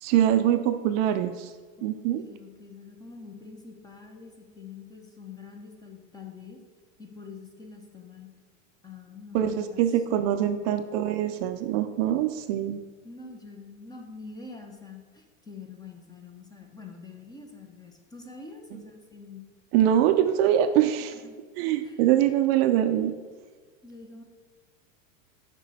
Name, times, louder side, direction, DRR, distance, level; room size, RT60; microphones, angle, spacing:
voice 1, 0.0-1.5 1.8-2.2 9.3-12.8 19.7-21.1 21.6-23.1, right 11 dB, 50° right, 9 dB, 0.5 m, -23 dB
voice 2, 1.8-6.6 7.0-8.3 8.8-9.8 10.1-10.6 13.0-19.4 21.1-21.4 21.8-22.0 23.8-24.2, left 4 dB, 10° left, 3 dB, 0.6 m, -45 dB
7.2 x 5.3 x 4.0 m, 1.5 s
supercardioid pair, 130°, 39 cm